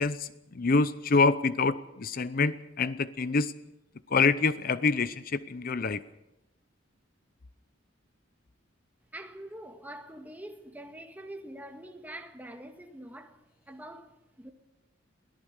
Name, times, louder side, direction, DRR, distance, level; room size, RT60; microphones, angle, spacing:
voice 1, 0.0-3.5 4.1-6.0, left 4 dB, 50° left, 0.6 m, -26 dB
voice 2, 9.1-13.4 13.7-14.5, right 1 dB, 10° right, 1.7 m, -45 dB
23.0 x 17.5 x 6.5 m
head